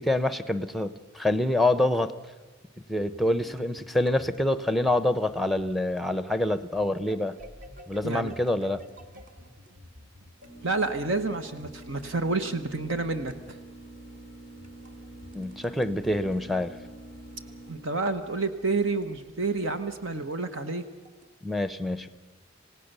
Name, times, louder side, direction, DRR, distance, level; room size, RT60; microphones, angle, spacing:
voice 1, 0.0-2.1 2.9-7.4 7.9-8.8 15.3-16.8 21.4-22.1, left 1 dB, ahead, 13 dB, 0.7 m, -26 dB
sound 1, 3.0-10.6 11.6-12.2 13.3-13.7 14.5-15.9 17.3-19.3 19.6-19.7 20.2-21.3, equal, 40° right, 1.8 m, -51 dB
voice 2, 8.0-8.3 10.6-13.3 17.7-20.8, right 3 dB, 65° right, 9 dB, 1.2 m, -29 dB
sound 2, 10.4-20.2, right 1 dB, 90° right, 6.1 m, -47 dB
27.5 x 17.0 x 6.8 m, 1.3 s
head